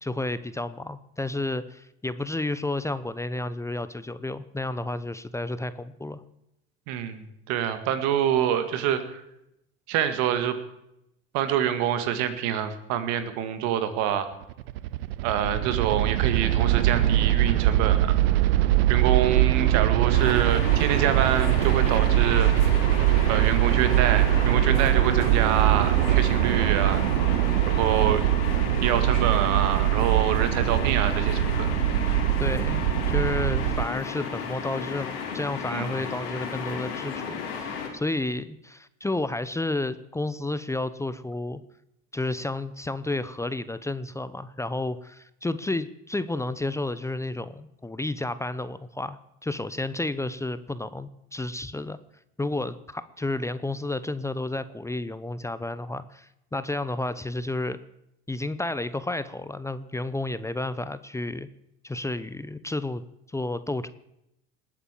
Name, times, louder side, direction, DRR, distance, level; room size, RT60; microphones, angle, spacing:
voice 1, 0.0-6.2 32.4-41.6 42.1-52.0 52.4-57.8 58.3-61.5 61.8-63.0 63.3-63.9, left 2 dB, 10° left, 14 dB, 0.8 m, -31 dB
voice 2, 6.9-9.2 9.9-10.6 11.3-14.3 15.2-18.1 18.9-22.5 23.3-27.0 27.7-28.2 28.8-31.7 35.7-35.9, right 10 dB, 70° right, 10 dB, 1.9 m, -26 dB
sound 1, 14.4-33.8, right 14 dB, 90° right, 0.6 m, -22 dB
sound 2, 20.1-37.9, left 6 dB, 85° left, 3.5 m, -34 dB
19.5 x 8.6 x 7.5 m, 0.82 s
hypercardioid pair, 80°, 29 cm